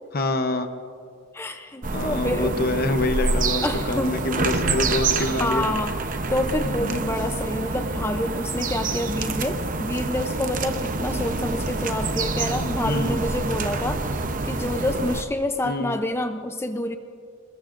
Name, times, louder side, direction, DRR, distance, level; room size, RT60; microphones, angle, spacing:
voice 1, 0.1-0.7 1.9-5.7 6.6-7.1 12.8-13.3 15.6-16.0, left 2 dB, 45° left, 8 dB, 0.9 m, -26 dB
voice 2, 1.3-2.6 3.6-4.3 5.2-6.0 6.3-14.0 14.5-17.0, left 1 dB, 10° left, 7 dB, 0.6 m, -27 dB
sound 1, 1.8-15.2, right 3 dB, 40° right, 0.8 m, -27 dB
27.0 x 20.5 x 2.6 m, 2.3 s
head